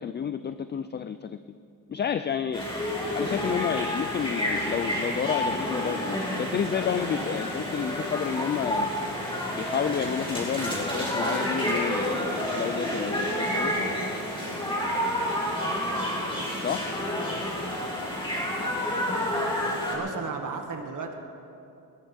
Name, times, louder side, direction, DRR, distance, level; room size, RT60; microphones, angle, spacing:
voice 1, 0.0-1.4 1.9-2.7 3.1-8.9 9.6-13.7 16.6-16.9, left 8 dB, 30° left, 11 dB, 0.4 m, -30 dB
sound 1, 2.5-20.0, equal, 15° left, 4.8 m, -29 dB
voice 2, 19.9-21.1, right 4 dB, 60° right, 3 dB, 2.0 m, -34 dB
20.0 x 19.5 x 3.5 m, 2.7 s
cardioid pair, 140°, 35 cm